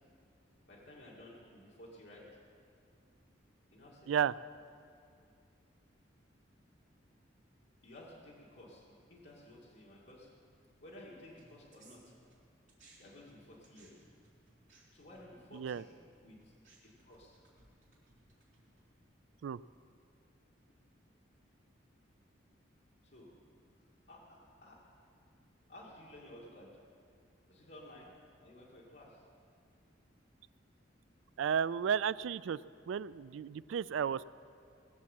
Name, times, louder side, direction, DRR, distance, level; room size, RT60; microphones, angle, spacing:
voice 1, 0.7-2.3 3.7-4.1 7.8-10.3 10.8-12.0 13.0-14.0 14.9-15.9 16.2-16.5 16.8-17.4 23.0-23.3 24.1-24.8 25.7-26.8 27.5-28.1 28.4-29.2, left 1 dB, 55° left, -5 dB, 2.2 m, -54 dB
sound 1, 11.4-13.0 13.3-19.0, right 3 dB, 40° right, 3.8 m, -65 dB
voice 2, 15.5-15.8 19.4-19.6 31.4-32.6 32.9-34.3, right 7 dB, 80° right, 18 dB, 0.3 m, -33 dB
19.0 x 7.3 x 7.4 m, 2.3 s
head